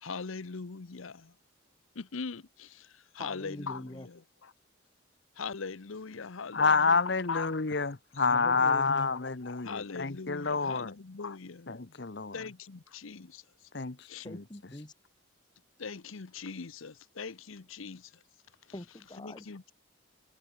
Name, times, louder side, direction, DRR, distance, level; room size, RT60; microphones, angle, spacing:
voice 1, 0.0-1.3 1.9-4.5 5.4-7.5 9.1-11.7 12.3-13.4 14.0-14.3 15.8-18.2 19.2-19.7, left 5 dB, 80° left, 0.8 m, -41 dB
voice 2, 3.2-4.1 8.2-9.2 14.2-14.9 18.7-19.5, left 1 dB, 20° left, 1.1 m, -43 dB
voice 3, 6.5-10.9 11.7-12.3 13.7-14.4, left 4 dB, 55° left, 1.0 m, -28 dB
head